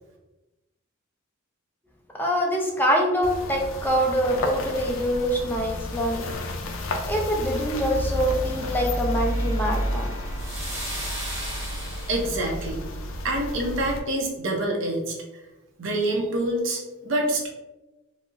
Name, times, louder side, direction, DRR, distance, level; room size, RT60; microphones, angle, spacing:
voice 1, 2.1-6.2 7.1-10.1, equal, 10° left, 0 dB, 0.4 m, -24 dB
sound 1, 3.2-14.0, left 1 dB, 70° left, 0.4 m, -31 dB
sound 2, 7.9-12.5, right 1 dB, 15° right, 0.9 m, -38 dB
voice 2, 12.1-12.8 13.2-15.2 15.8-17.5, right 1 dB, 65° right, 1 dB, 0.6 m, -26 dB
3.8 x 2.0 x 2.4 m, 1.0 s
head